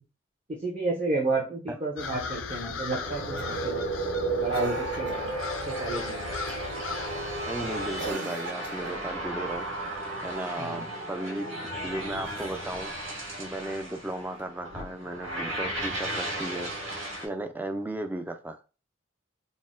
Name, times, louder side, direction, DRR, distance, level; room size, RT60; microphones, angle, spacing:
voice 1, 0.5-3.9 4.3-5.4 5.7-6.3 10.6-10.8, right 3 dB, 35° right, -4 dB, 0.8 m, -31 dB
sound 1, 2.0-8.1, left 4 dB, 75° left, 0.5 m, -37 dB
sound 2, 3.0-17.2, right 2 dB, 80° right, 2.0 m, -34 dB
Cough, 3.4-3.7 4.5-5.3 6.5-6.8 8.0-9.0 12.1-12.9 14.4-14.5, right 3 dB, 65° right, 0.9 m, -41 dB
voice 2, 7.5-9.7 10.2-11.5 11.8-12.9 13.4-16.7 17.2-18.6, right 1 dB, 10° right, 6 dB, 0.4 m, -35 dB
4.1 x 2.1 x 3.7 m, 0.33 s
head